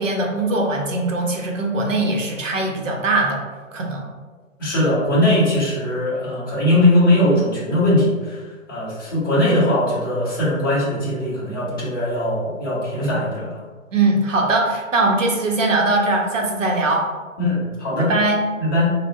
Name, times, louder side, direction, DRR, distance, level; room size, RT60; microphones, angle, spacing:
voice 1, 0.0-3.5 3.7-4.1 13.9-17.1 18.0-18.4, right 2 dB, 70° right, 1 dB, 0.7 m, -21 dB
voice 2, 4.6-13.6 17.4-18.1 18.6-18.9, left 1 dB, 15° left, -9 dB, 0.5 m, -20 dB
3.5 x 2.0 x 2.3 m, 1.4 s
figure-of-eight pair, 130°, 40 cm